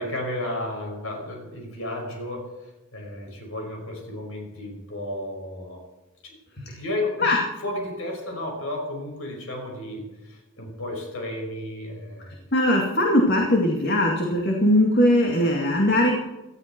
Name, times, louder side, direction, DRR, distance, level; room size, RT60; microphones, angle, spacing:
voice 1, 0.0-5.8 6.2-6.4 6.7-12.3, left 1 dB, 70° left, 2 dB, 5.5 m, -33 dB
voice 2, 12.5-16.1, left 1 dB, 50° left, 0 dB, 2.3 m, -20 dB
19.0 x 13.5 x 4.6 m, 1.1 s
head